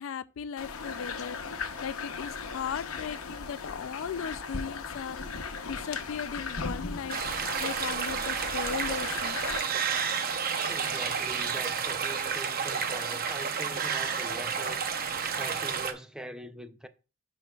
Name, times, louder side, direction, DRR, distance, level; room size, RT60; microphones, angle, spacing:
voice 1, 0.0-7.2 7.6-9.4, left 7 dB, 65° left, 0.4 m, -37 dB
sound 1, 0.6-9.6, left 4 dB, 85° left, 0.8 m, -37 dB
sound 2, 7.1-15.9, right 6 dB, 45° right, 0.7 m, -31 dB
voice 2, 10.7-16.9, right 1 dB, 5° right, 0.4 m, -43 dB
11.0 x 5.1 x 2.3 m
head